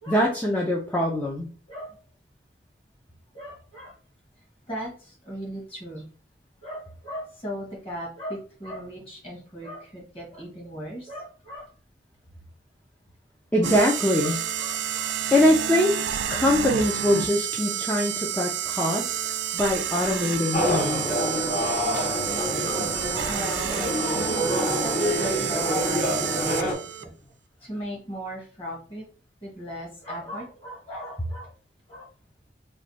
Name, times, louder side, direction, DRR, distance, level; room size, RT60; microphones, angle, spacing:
voice 1, 0.1-1.5 13.5-14.4 15.3-16.0 16.3-19.1 19.5-21.2, left 1 dB, 10° left, -2 dB, 0.5 m, -23 dB
voice 2, 3.3-3.9 4.7-6.1 6.6-11.7 13.6-13.7 14.2-15.1 20.7-20.9 22.5-22.7 23.3-23.9 24.5-24.9 25.2-26.2 27.0-27.1 27.6-29.0 29.4-31.5 31.9-32.1, equal, 30° left, -2 dB, 1.5 m, -37 dB
sound 1, 13.6-27.0, right 9 dB, 85° right, 0.3 m, -30 dB
sound 2, 20.5-26.7, equal, 45° left, 1.2 m, -26 dB
3.2 x 2.3 x 4.0 m, 0.39 s
head